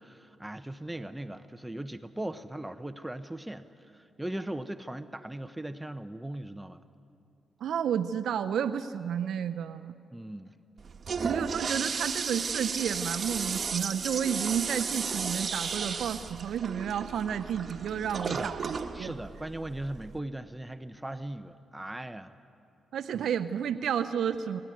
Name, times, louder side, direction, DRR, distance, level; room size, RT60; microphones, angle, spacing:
voice 1, 0.0-6.8 10.1-10.5 18.3-18.5 18.9-22.3 23.1-23.3, right 1 dB, 10° right, 11 dB, 0.8 m, -39 dB
voice 2, 7.6-9.9 11.3-19.1 22.9-24.6, right 8 dB, 75° right, 9 dB, 0.5 m, -31 dB
Toilet flush, 10.8-20.2, right 5 dB, 55° right, 1.2 m, -34 dB
26.0 x 13.0 x 9.4 m, 2.7 s
supercardioid pair, 55°, 0 cm